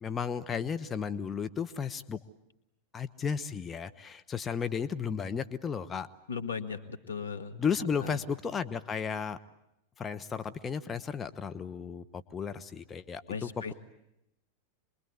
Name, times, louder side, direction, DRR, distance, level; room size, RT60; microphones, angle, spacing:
voice 1, 0.0-2.2 2.9-6.1 7.6-9.4 10.0-13.7, left 6 dB, 20° left, 9 dB, 1.1 m, -34 dB
voice 2, 6.3-7.6 8.0-8.2 13.3-13.7, left 5 dB, 90° left, 6 dB, 2.0 m, -37 dB
27.0 x 22.0 x 9.6 m, 0.85 s
hypercardioid pair, 95°, 0 cm